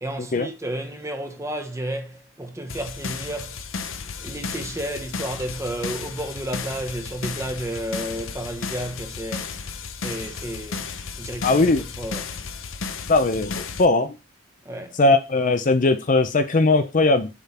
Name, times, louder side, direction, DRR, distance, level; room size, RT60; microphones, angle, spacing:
voice 1, 0.0-3.6 4.2-9.5 10.0-10.9 11.2-12.4 14.6-15.0, right 1 dB, 15° right, 0.9 m, -32 dB
sound 1, 2.7-13.9, left 5 dB, 70° left, 0.7 m, -34 dB
voice 2, 11.4-11.8 13.1-14.2 15.0-17.3, left 2 dB, 40° left, 0.5 m, -19 dB
7.1 x 3.7 x 4.2 m
head